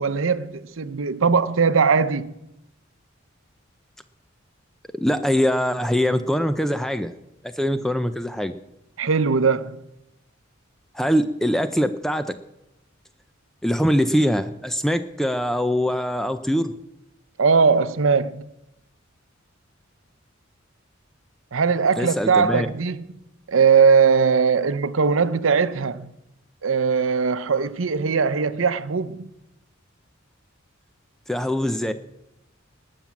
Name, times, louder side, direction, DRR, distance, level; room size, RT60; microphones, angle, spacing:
voice 1, 0.0-2.4 9.0-9.8 17.4-18.5 21.5-23.1 23.5-26.1 26.6-29.3, right 5 dB, 75° right, 0.7 m, -20 dB
voice 2, 4.9-7.1 7.4-8.5 10.9-12.3 13.6-16.7 22.0-22.7 31.3-31.9, equal, ahead, 0.5 m, -23 dB
19.5 x 7.4 x 7.2 m
head